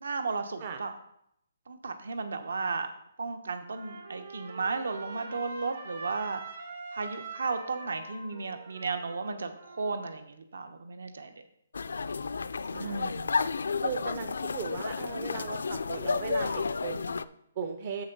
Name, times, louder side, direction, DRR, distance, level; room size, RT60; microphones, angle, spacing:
voice 1, 0.0-0.9 1.7-2.9 3.2-6.4 6.9-11.3 12.7-13.3, right 4 dB, 75° right, 9 dB, 1.0 m, -34 dB
Trumpet, 3.5-10.1, right 3 dB, 50° right, 1.9 m, -44 dB
sound 1, 11.7-17.2, left 4 dB, 85° left, 0.4 m, -32 dB
voice 2, 12.7-13.1 13.8-18.0, right 6 dB, 30° right, 6 dB, 0.4 m, -38 dB
7.1 x 6.4 x 5.3 m, 0.75 s
hypercardioid pair, 175°, 0 cm